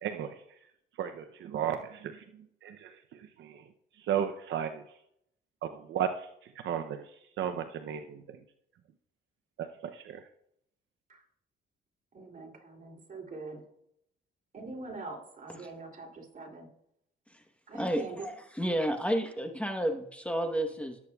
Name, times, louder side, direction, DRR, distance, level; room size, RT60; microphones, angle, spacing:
voice 1, 0.0-0.4 1.0-2.2 2.6-3.6 4.0-4.8 5.6-6.3 6.6-7.1 7.4-8.4 9.6-10.2, right 9 dB, 70° right, 8 dB, 0.7 m, -34 dB
voice 2, 12.1-13.6 14.5-16.7 17.7-18.3 18.6-18.8, right 3 dB, 45° right, 1 dB, 2.9 m, -43 dB
voice 3, 18.5-21.0, equal, 5° left, 5 dB, 1.1 m, -30 dB
17.5 x 8.3 x 2.3 m, 0.75 s
cardioid pair, 90°, 20 cm